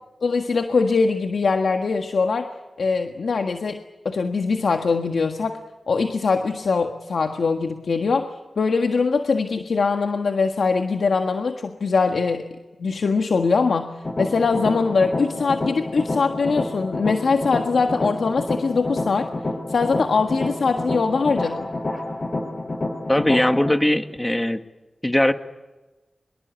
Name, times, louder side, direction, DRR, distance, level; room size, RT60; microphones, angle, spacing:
voice 1, 0.2-2.5 2.8-5.6 5.9-8.3 8.6-12.4 12.8-13.9 14.2-19.3 19.7-21.7, left 4 dB, 85° left, 5 dB, 1.6 m, -22 dB
sound 1, 14.0-23.7, left 2 dB, 40° left, 5.3 m, -29 dB
voice 2, 23.1-24.6 25.0-25.3, left 1 dB, 15° left, 7 dB, 1.9 m, -20 dB
24.5 x 22.5 x 8.3 m, 1.1 s
cardioid pair, 60°, 0 cm